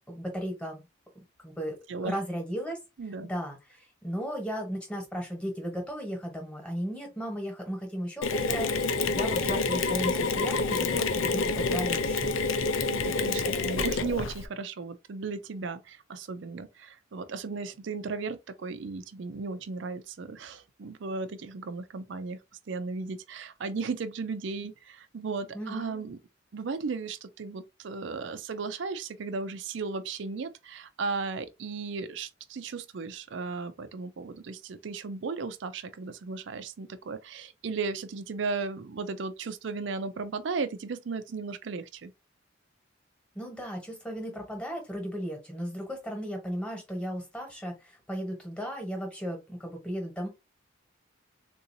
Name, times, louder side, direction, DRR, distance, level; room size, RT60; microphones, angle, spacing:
voice 1, 0.1-0.8 1.4-2.8 3.2-12.4 25.5-26.1 43.3-50.3, equal, 5° left, 1.2 m, -35 dB
voice 2, 3.0-3.3 12.9-22.4 22.7-26.2 26.5-42.1, right 4 dB, 65° right, 0.4 m, -35 dB
Mechanisms, 8.2-14.5, left 4 dB, 80° left, 0.5 m, -28 dB
3.9 x 2.6 x 2.6 m
head